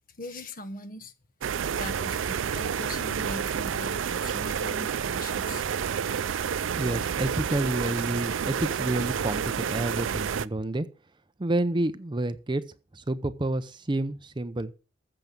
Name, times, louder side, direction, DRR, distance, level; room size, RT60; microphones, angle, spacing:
voice 1, 0.2-1.1 1.7-5.6, left 2 dB, 45° left, 1.1 m, -40 dB
sound 1, 1.4-10.5, right 7 dB, 85° right, 0.4 m, -29 dB
voice 2, 6.8-10.9 11.4-12.6 12.9-14.7, right 1 dB, 25° right, 0.6 m, -29 dB
13.5 x 7.4 x 5.2 m
head